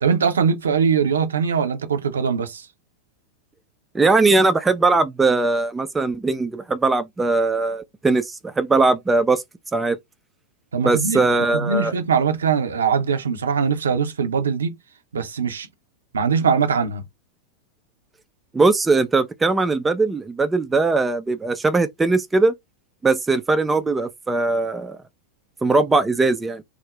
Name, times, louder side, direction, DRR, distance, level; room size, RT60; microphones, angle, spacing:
voice 1, 0.0-2.7 10.7-14.8 15.1-15.7 16.1-17.0, right 6 dB, 70° right, 0.6 m, -21 dB
voice 2, 3.9-9.4 9.7-10.0 10.8-11.9 18.5-22.5 23.0-25.0 25.6-26.6, right 3 dB, 10° right, 0.3 m, -20 dB
2.4 x 2.0 x 3.1 m
figure-of-eight pair, 90°, 0 cm